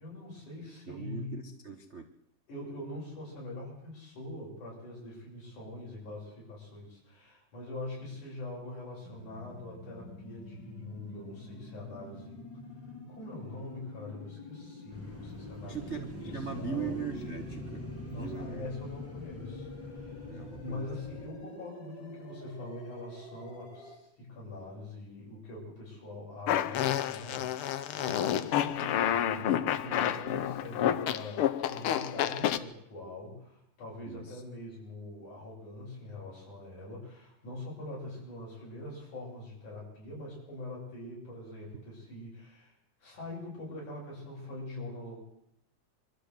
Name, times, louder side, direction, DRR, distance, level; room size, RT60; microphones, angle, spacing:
voice 1, 0.0-1.3 2.5-12.4 13.1-15.8 16.3-16.9 18.0-42.7 43.0-45.2, left 2 dB, 70° left, -4 dB, 8.7 m, -43 dB
voice 2, 0.9-2.1 15.6-17.8 18.1-18.6 20.2-20.8 34.0-34.4, right 6 dB, 75° right, 5 dB, 0.6 m, -39 dB
sound 1, 9.0-23.9, left 2 dB, 35° left, 4.0 m, -48 dB
sound 2, 14.9-21.3, left 1 dB, 5° left, 5.0 m, -44 dB
Fart, 26.5-32.6, left 10 dB, 85° left, 1.2 m, -29 dB
24.0 x 13.5 x 8.1 m, 0.76 s
omnidirectional pair, 3.6 m